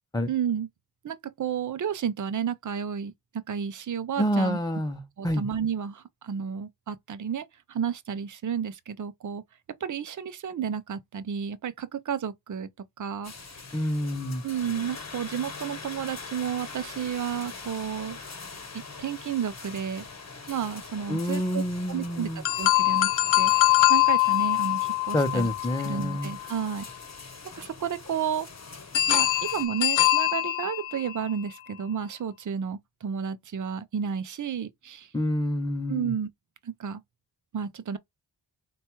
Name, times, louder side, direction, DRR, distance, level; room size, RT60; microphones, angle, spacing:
voice 1, 0.3-0.7 1.0-4.6 5.2-9.4 9.8-12.7 13.0-13.3 14.4-18.2 18.7-20.1 20.5-22.3 22.6-23.1 23.4-23.5 23.9-25.5 25.8-26.8 27.6-28.5 29.1-35.1 35.9-36.3 36.6-37.0 37.5-38.0, right 8 dB, 45° right, 0.5 m, -32 dB
voice 2, 4.2-5.5 13.7-14.4 21.1-22.4 25.1-26.3 35.1-36.1, equal, 10° left, 0.5 m, -28 dB
sound 1, 13.2-29.7, left 4 dB, 35° left, 0.9 m, -43 dB
sound 2, 22.4-26.5 28.9-31.3, left 16 dB, 85° left, 0.5 m, -23 dB
3.8 x 2.3 x 4.4 m
wide cardioid pair, 70°, 44 cm